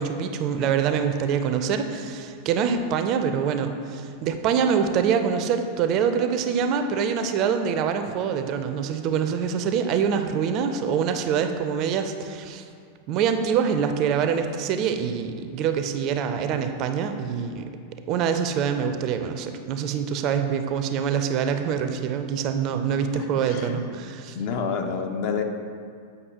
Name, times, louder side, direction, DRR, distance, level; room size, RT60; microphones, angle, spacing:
voice 1, 0.0-12.6 13.1-17.7 18.1-24.4, right 7 dB, 40° right, 8 dB, 0.4 m, -25 dB
voice 2, 23.1-23.9 24.3-25.4, left 6 dB, 45° left, 5 dB, 0.5 m, -29 dB
7.9 x 5.3 x 2.8 m, 2.2 s
figure-of-eight pair, 90°, 0 cm